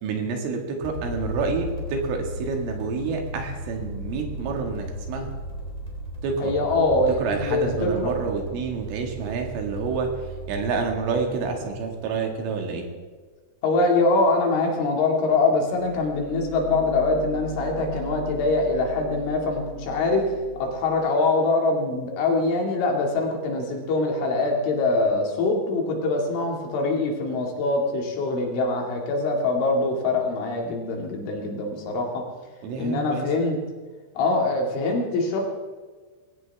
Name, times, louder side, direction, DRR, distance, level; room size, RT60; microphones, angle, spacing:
voice 1, 0.0-5.3 6.2-6.5 7.1-12.9 32.6-33.3, right 5 dB, 85° right, 3 dB, 4.6 m, -28 dB
sound 1, 0.8-12.5, equal, 10° left, 3.4 m, -36 dB
voice 2, 6.4-8.1 13.6-20.2 20.6-32.2 32.8-33.6 34.2-35.4, left 3 dB, 75° left, 1 dB, 4.9 m, -23 dB
sound 2, 15.7-21.1, right 1 dB, 55° right, 4.5 m, -38 dB
21.0 x 17.0 x 3.6 m, 1.4 s
omnidirectional pair, 5.5 m